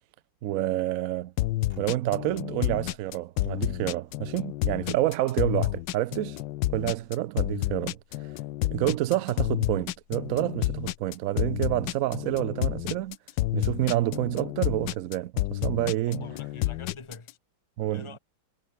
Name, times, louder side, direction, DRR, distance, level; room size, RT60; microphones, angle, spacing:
voice 1, 0.4-1.3 1.8-6.4 6.7-8.0 8.7-13.2 13.5-16.2 17.8-18.1, right 14 dB, 75° right, 0.7 m, -28 dB
sound 1, 1.4-17.3, left 16 dB, 75° left, 1.2 m, -30 dB
sound 2, 1.7-2.2 2.8-3.1 3.4-4.0 4.8-7.2, right 2 dB, 30° right, 4.0 m, -66 dB
voice 2, 16.1-17.3 17.9-18.2, left 4 dB, 15° left, 1.5 m, -45 dB
omnidirectional pair, 2.1 m